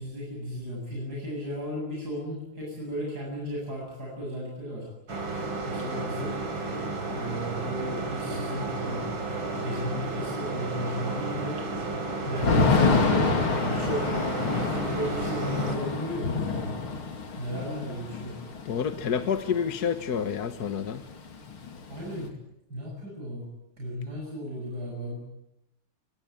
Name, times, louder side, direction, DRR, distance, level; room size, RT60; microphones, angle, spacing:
voice 1, 0.0-4.9 5.7-6.3 7.1-9.1 9.5-11.6 12.2-13.3 13.6-16.7 17.4-18.3 21.9-22.3 22.7-23.5 23.8-25.2, equal, 45° right, -2 dB, 8.4 m, -34 dB
sound 1, 5.1-15.8, right 3 dB, 65° right, 4.8 m, -32 dB
Thunder / Rain, 12.4-20.3 20.5-20.6 20.9-22.3, left 4 dB, 80° left, 3.4 m, -27 dB
voice 2, 18.6-21.0, left 7 dB, 50° left, 9 dB, 1.7 m, -28 dB
24.0 x 23.0 x 8.9 m, 0.84 s
omnidirectional pair, 2.3 m